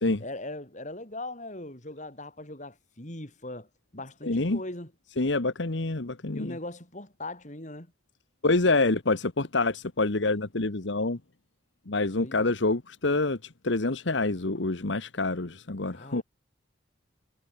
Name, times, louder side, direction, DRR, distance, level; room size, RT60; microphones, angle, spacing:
voice 1, 0.2-3.7 3.9-4.9 5.4-5.5 6.3-7.9 12.2-12.4 15.9-16.2, left 2 dB, 40° left, 5.0 m, -40 dB
voice 2, 4.2-4.6 5.2-6.6 8.4-11.2 11.9-16.2, left 2 dB, 75° left, 1.4 m, -27 dB
head